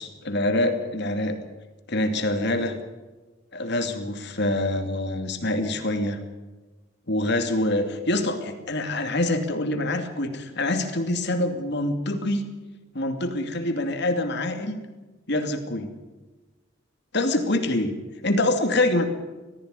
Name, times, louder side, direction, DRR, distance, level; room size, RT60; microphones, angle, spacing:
voice 1, 0.0-1.4 1.9-2.7 3.5-6.2 7.1-12.5 12.9-14.8 15.3-15.9 17.1-17.9 18.2-19.0, left 1 dB, 55° left, 6 dB, 2.6 m, -25 dB
19.0 x 14.5 x 9.6 m, 1.2 s
head